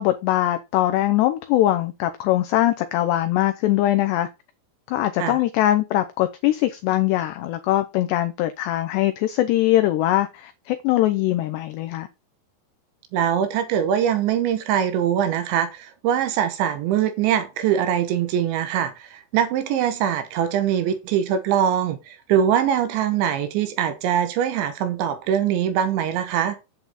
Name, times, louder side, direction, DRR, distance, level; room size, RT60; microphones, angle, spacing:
voice 1, 0.0-4.3 4.9-12.1, left 14 dB, 85° left, 2.4 m, -21 dB
voice 2, 13.1-26.6, right 9 dB, 75° right, 3.2 m, -22 dB
8.4 x 8.1 x 4.1 m
omnidirectional pair, 5.8 m